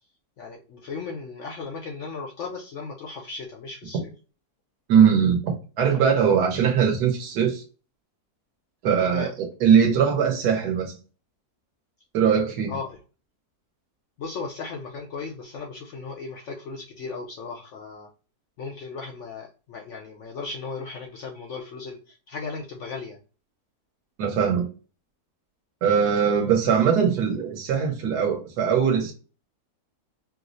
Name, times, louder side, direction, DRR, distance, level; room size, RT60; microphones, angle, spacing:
voice 1, 0.4-4.1 9.1-9.3 12.7-13.0 14.2-18.1 18.6-23.2, left 4 dB, 65° left, 0.8 m, -36 dB
voice 2, 4.9-7.6 8.8-9.3 9.6-10.9 12.1-12.8 24.2-24.7 25.8-29.1, right 7 dB, 90° right, 1.4 m, -21 dB
4.6 x 2.0 x 2.5 m
omnidirectional pair, 1.7 m